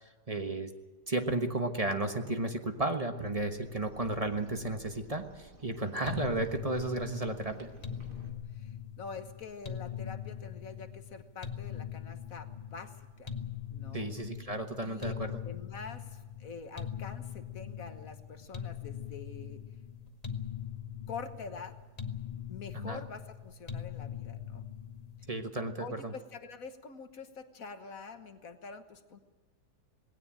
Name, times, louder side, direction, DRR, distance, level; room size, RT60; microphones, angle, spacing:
voice 1, 0.3-0.7 1.1-7.7 13.9-15.3 22.7-23.0 25.3-26.1, right 2 dB, 25° right, 6 dB, 1.2 m, -33 dB
sound 1, 3.2-8.3, right 1 dB, 75° right, 3.2 m, -53 dB
sound 2, 6.1-25.4, left 8 dB, 25° left, 1.0 m, -41 dB
voice 2, 8.5-13.3 13.7-14.1 14.8-15.1 15.4-19.6 21.1-21.8 22.5-24.6 25.8-29.2, left 5 dB, 55° left, 8 dB, 1.6 m, -46 dB
19.0 x 17.5 x 8.9 m, 1.2 s
omnidirectional pair, 1.8 m